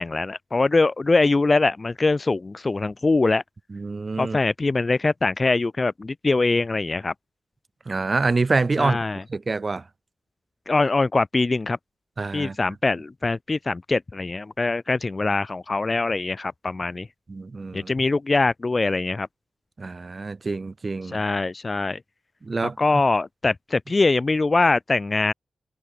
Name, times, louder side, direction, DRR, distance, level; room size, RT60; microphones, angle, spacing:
voice 1, 0.0-3.4 4.2-7.1 8.8-9.2 10.7-11.8 12.3-17.1 17.7-19.3 21.1-22.0 22.6-25.3, left 3 dB, 25° left, 1.3 m, -23 dB
voice 2, 3.7-4.4 7.9-9.0 9.3-9.8 12.2-12.6 17.3-17.9 19.8-21.2 22.4-23.0, right 3 dB, 30° right, 2.7 m, -26 dB
wide cardioid pair, 155°, 0 cm